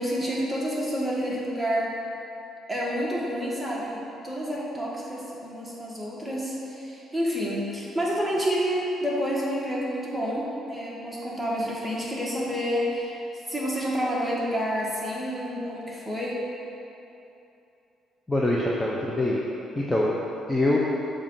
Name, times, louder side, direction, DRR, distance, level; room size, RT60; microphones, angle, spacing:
voice 1, 0.0-1.9 2.7-13.2 13.5-16.4, equal, 5° right, -5 dB, 1.4 m, -29 dB
voice 2, 18.3-19.4 19.8-20.2 20.5-20.8, left 1 dB, 15° left, -4 dB, 0.6 m, -24 dB
7.1 x 2.5 x 5.4 m, 2.8 s
cardioid pair, 80°, 0 cm